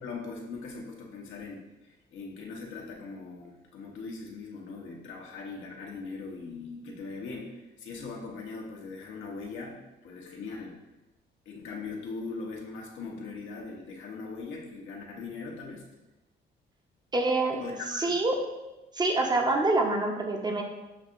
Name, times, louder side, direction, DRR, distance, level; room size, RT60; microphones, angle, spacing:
voice 1, 0.0-10.8 11.5-15.8 17.6-18.2, left 4 dB, 75° left, -1 dB, 1.0 m, -40 dB
voice 2, 17.1-17.6 17.9-18.4 18.9-20.6, right 2 dB, 20° right, 2 dB, 0.7 m, -26 dB
7.1 x 2.7 x 2.5 m, 1.0 s
cardioid pair, 90°, 20 cm